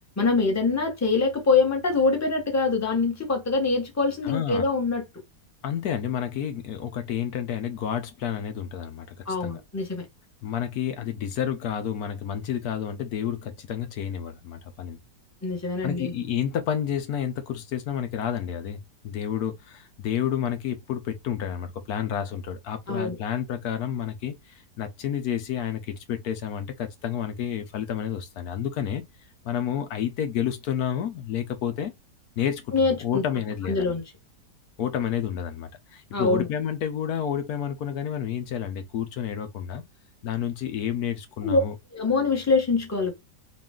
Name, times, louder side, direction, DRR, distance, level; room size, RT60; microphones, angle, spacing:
voice 1, 0.2-5.0 9.3-10.0 15.4-16.1 22.9-23.2 32.7-33.2 33.7-34.0 36.1-36.5 41.4-41.6 41.9-43.1, left 3 dB, 15° left, 0.7 m, -24 dB
voice 2, 4.2-4.7 5.6-9.1 9.4-9.6 10.4-15.0 15.8-29.0 29.4-31.9 32.4-34.0 34.8-39.8 40.2-41.7, left 9 dB, 65° left, 1.2 m, -30 dB
4.1 x 2.4 x 3.6 m
omnidirectional pair, 1.9 m